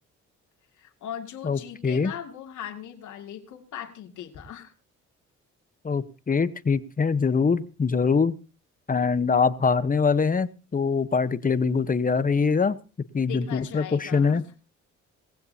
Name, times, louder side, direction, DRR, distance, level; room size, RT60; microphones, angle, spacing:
voice 1, 0.8-4.7 13.3-14.4, left 9 dB, 75° left, 4 dB, 2.5 m, -39 dB
voice 2, 1.4-2.1 5.8-8.4 8.9-12.8 13.1-14.4, left 5 dB, 30° left, 14 dB, 1.0 m, -23 dB
19.0 x 15.5 x 2.8 m, 0.33 s
cardioid pair, 90°, 30 cm